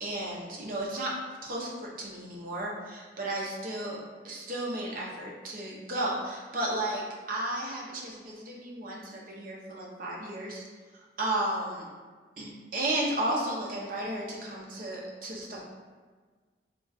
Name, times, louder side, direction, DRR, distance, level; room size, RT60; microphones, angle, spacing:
voice 1, 0.0-4.0 4.2-10.6 10.9-11.9 12.4-15.6, right 1 dB, 50° right, -3 dB, 0.6 m, -33 dB
2.3 x 2.3 x 3.9 m, 1.5 s
head